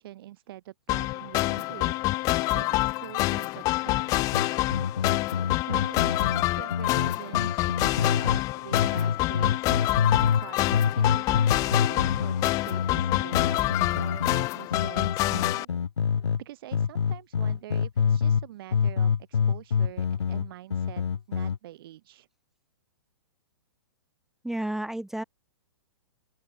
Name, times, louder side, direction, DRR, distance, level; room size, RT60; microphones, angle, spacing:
voice 1, 0.0-4.2 5.4-10.0 10.4-15.7 16.4-22.3, right 14 dB, 55° right, 2.3 m, -45 dB
sound 1, 0.9-15.6, left 20 dB, 25° left, 0.3 m, -27 dB
sound 2, 4.3-8.4 8.7-10.5 10.7-16.4 16.7-18.5 18.7-21.6, left 6 dB, 90° left, 1.2 m, -26 dB
voice 2, 24.4-25.2, right 1 dB, ahead, 1.0 m, -31 dB
open air
hypercardioid pair, 130°, 14 cm